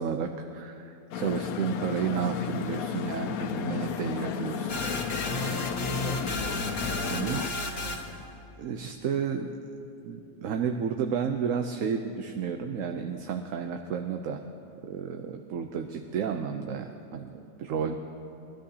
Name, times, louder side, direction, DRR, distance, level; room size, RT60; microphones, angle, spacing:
voice 1, 0.0-4.7 7.1-7.8 8.6-14.4 14.8-18.0, right 6 dB, 70° right, 5 dB, 1.0 m, -32 dB
sound 1, 1.1-7.5, left 7 dB, 85° left, 1.1 m, -33 dB
voice 2, 4.0-4.7 5.4-6.5 7.6-8.2, left 2 dB, 50° right, -6 dB, 3.9 m, -44 dB
sound 2, 4.7-8.2, left 2 dB, 50° left, 1.3 m, -33 dB
22.5 x 13.0 x 2.8 m, 2.7 s
omnidirectional pair, 1.5 m